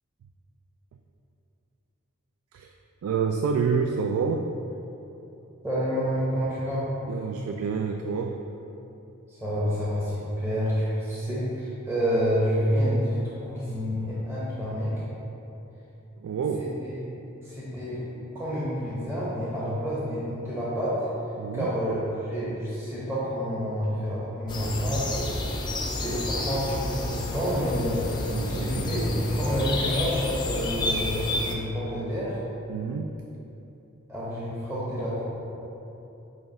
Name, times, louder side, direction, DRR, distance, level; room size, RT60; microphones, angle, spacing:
voice 1, 3.0-4.5 7.1-8.4 16.2-16.7 21.4-21.7 28.3-29.0 32.7-33.1, right 5 dB, 85° right, 4 dB, 0.3 m, -28 dB
voice 2, 5.6-6.9 9.3-15.0 16.6-17.0 17.4-18.0 18.3-21.1 21.5-28.0 28.4-29.0 29.3-32.4 34.1-35.3, equal, 10° right, -8 dB, 0.8 m, -29 dB
sound 1, 24.5-31.6, left 1 dB, 20° left, 0.5 m, -29 dB
7.9 x 2.9 x 4.2 m, 3.0 s
head